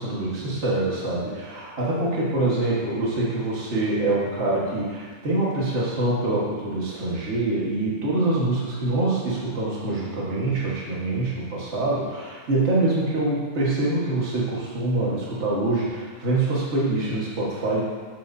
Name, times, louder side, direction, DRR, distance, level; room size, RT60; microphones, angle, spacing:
voice 1, 0.0-17.8, right 2 dB, 60° right, -6 dB, 0.7 m, -25 dB
12.5 x 6.2 x 2.7 m, 1.5 s
omnidirectional pair, 3.8 m